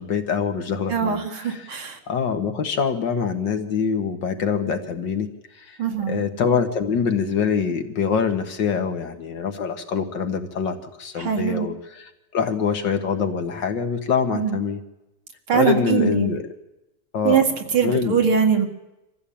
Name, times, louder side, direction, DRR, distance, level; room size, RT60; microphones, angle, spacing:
voice 1, 0.0-1.8 2.1-5.3 5.6-5.8 6.1-14.8 15.5-16.4 17.1-17.5 17.8-18.2, left 6 dB, 55° left, 7 dB, 2.3 m, -24 dB
voice 2, 0.9-2.0 5.8-6.2 11.2-11.7 14.3-14.6 15.5-16.3 17.2-17.5 17.7-18.7, right 7 dB, 70° right, 3 dB, 2.8 m, -22 dB
25.0 x 15.0 x 8.7 m, 0.96 s
omnidirectional pair, 2.4 m